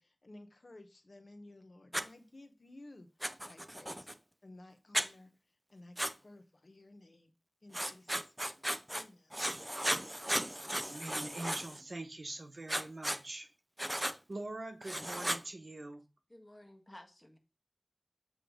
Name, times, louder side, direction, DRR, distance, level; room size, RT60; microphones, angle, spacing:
voice 1, 0.0-3.1 3.4-4.1 4.4-5.3 5.7-7.3 7.6-8.6 8.9-9.4, left 2 dB, 70° left, 0.9 m, -55 dB
Writing, 1.9-2.1 3.2-4.1 4.9-5.1 6.0-6.1 7.7-9.0 9.3-11.8 12.7-13.2 13.8-14.2 14.8-15.4, equal, 15° right, 0.5 m, -35 dB
voice 2, 10.9-13.5 13.9-16.0, right 2 dB, 75° right, 1.0 m, -44 dB
voice 3, 16.3-17.4, left 1 dB, 25° left, 1.5 m, -54 dB
7.9 x 3.2 x 5.1 m
wide cardioid pair, 50°, 0 cm